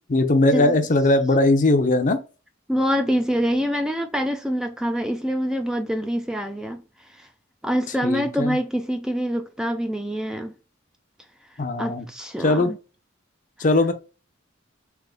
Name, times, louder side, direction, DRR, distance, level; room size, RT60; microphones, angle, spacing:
voice 1, 0.1-2.2 8.0-8.6 11.6-12.1 12.4-12.7 13.6-13.9, left 2 dB, 40° left, 0.6 m, -19 dB
voice 2, 2.7-6.8 7.1-7.3 7.6-10.5 11.8-12.8, equal, 5° right, 0.4 m, -25 dB
3.5 x 3.1 x 3.7 m
head